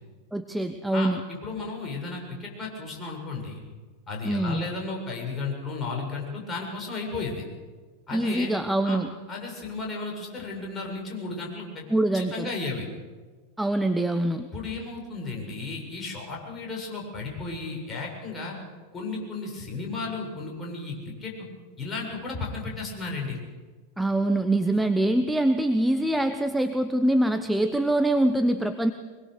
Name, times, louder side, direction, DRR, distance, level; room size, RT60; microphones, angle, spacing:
voice 1, 0.3-1.2 4.2-4.7 8.1-9.1 11.9-12.5 13.6-14.5 24.0-28.9, right 1 dB, 5° right, 8 dB, 1.1 m, -24 dB
voice 2, 0.9-3.6 4.1-7.4 8.1-8.5 8.8-9.0 9.3-11.8 12.1-12.9 14.5-18.6 18.9-21.5 21.8-23.4, left 3 dB, 20° left, -1 dB, 7.3 m, -34 dB
24.0 x 21.5 x 6.8 m, 1.4 s
figure-of-eight pair, 90°, 0 cm